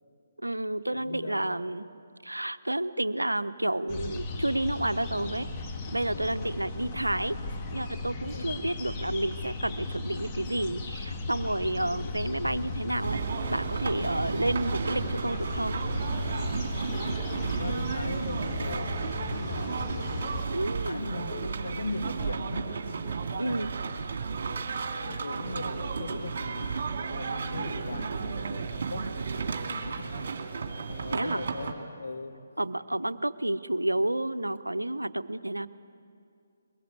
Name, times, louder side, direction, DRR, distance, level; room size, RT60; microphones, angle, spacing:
voice 1, 0.4-1.8 2.2-5.5 5.9-7.4 7.7-13.2 13.5-15.8 20.5-21.1 23.4-23.7 31.1-31.4 32.6-35.7, right 1 dB, 90° right, 14 dB, 0.7 m, -30 dB
voice 2, 0.9-1.6 6.1-6.4 8.2-8.7 11.6-12.0 14.0-14.3 17.4-20.0 20.8-24.2 25.0-29.1 29.6-32.4, left 2 dB, 70° left, 6 dB, 1.8 m, -40 dB
sound 1, 3.9-20.5, left 3 dB, 25° left, 1.9 m, -36 dB
sound 2, 13.0-31.7, right 5 dB, 50° right, 2.4 m, -33 dB
22.5 x 21.5 x 8.3 m, 2.4 s
figure-of-eight pair, 145°, 0 cm